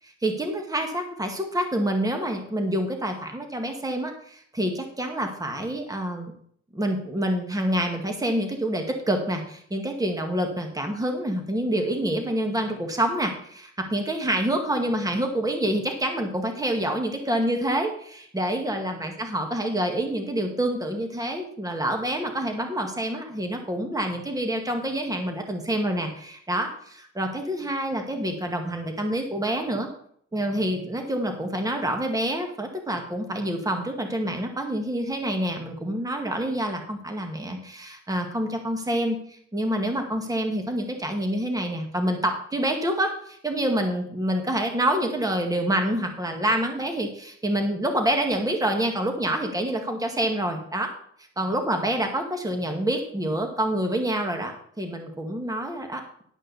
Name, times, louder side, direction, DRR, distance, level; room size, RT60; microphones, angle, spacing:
voice 1, 0.0-6.3 6.7-29.9 30.3-50.9 51.4-54.5 54.8-56.2, right 1 dB, 10° right, 4 dB, 2.0 m, -27 dB
11.5 x 5.5 x 6.9 m, 0.63 s
cardioid pair, 90°, 30 cm